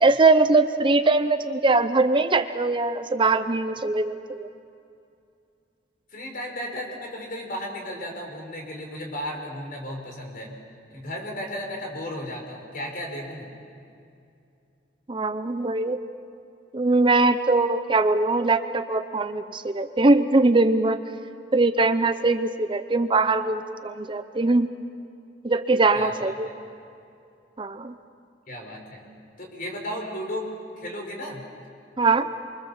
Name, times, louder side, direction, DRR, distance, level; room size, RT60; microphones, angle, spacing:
voice 1, 0.0-4.5 15.1-16.0 16.7-21.0 21.5-24.8 25.4-26.5 27.6-27.9 32.0-32.3, right 3 dB, 30° right, 10 dB, 0.7 m, -21 dB
voice 2, 6.1-10.5 10.9-13.5 25.9-26.5 28.5-29.1 29.4-30.5 30.8-31.4, equal, 50° left, 1 dB, 5.1 m, -34 dB
28.5 x 24.0 x 7.2 m, 2.5 s
head